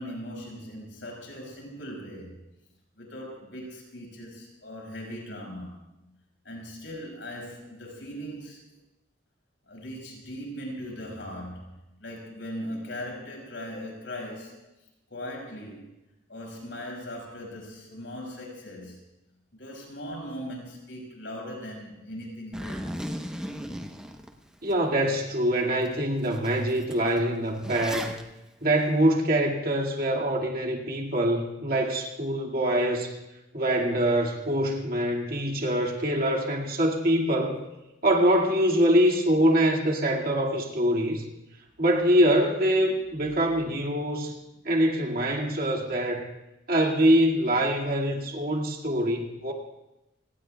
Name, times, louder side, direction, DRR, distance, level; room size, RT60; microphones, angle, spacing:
voice 1, 0.0-2.4 3.0-5.9 6.4-8.6 9.7-14.6 15.1-15.9 16.3-19.0 19.5-23.1, equal, 70° left, 0 dB, 5.8 m, -39 dB
Zipper (clothing), 22.5-24.8 25.2-25.3 25.8-25.9 26.2-28.2, equal, 5° right, 0.8 m, -37 dB
voice 2, 24.6-28.2 28.6-33.2 33.5-37.6 38.0-41.2 41.8-44.4 44.6-46.3 46.7-49.5, right 1 dB, 50° right, -1 dB, 2.0 m, -24 dB
29.5 x 18.5 x 2.3 m, 0.94 s
head